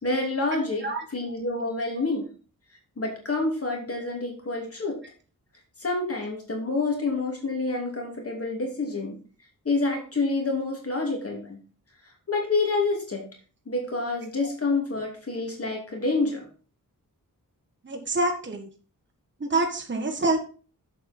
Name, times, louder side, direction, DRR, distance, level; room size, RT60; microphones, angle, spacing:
voice 1, 0.0-2.3 3.0-5.0 5.8-9.2 9.6-11.6 12.3-13.2 13.7-16.5, left 3 dB, 40° left, 1 dB, 2.7 m, -28 dB
voice 2, 17.8-18.7 19.4-20.4, right 2 dB, 30° right, 3 dB, 1.5 m, -26 dB
8.0 x 7.4 x 4.4 m, 0.38 s
wide cardioid pair, 130°, 35 cm